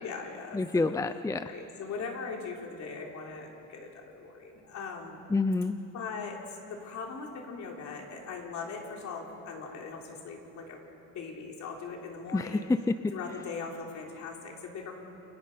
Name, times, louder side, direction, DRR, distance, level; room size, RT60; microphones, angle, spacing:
voice 1, 0.0-1.0 1.4-5.2 5.9-10.8 11.1-12.7 13.1-14.9, left 5 dB, 60° left, 0 dB, 3.8 m, -40 dB
voice 2, 0.5-1.5 5.3-5.8 12.3-13.1, left 3 dB, 10° left, 11 dB, 0.6 m, -28 dB
29.0 x 20.5 x 5.6 m, 2.9 s
cardioid pair, 105°, 32 cm